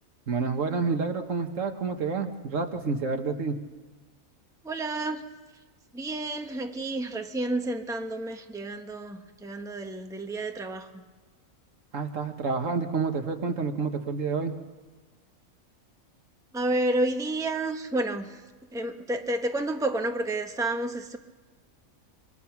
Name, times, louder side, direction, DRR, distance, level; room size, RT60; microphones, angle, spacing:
voice 1, 0.3-3.6 11.9-14.5, right 4 dB, 65° right, 6 dB, 1.6 m, -29 dB
voice 2, 4.6-5.2 5.9-11.0 16.5-18.4 18.7-21.2, right 2 dB, 5° right, 4 dB, 1.1 m, -30 dB
26.5 x 23.0 x 5.9 m, 1.3 s
omnidirectional pair, 1.5 m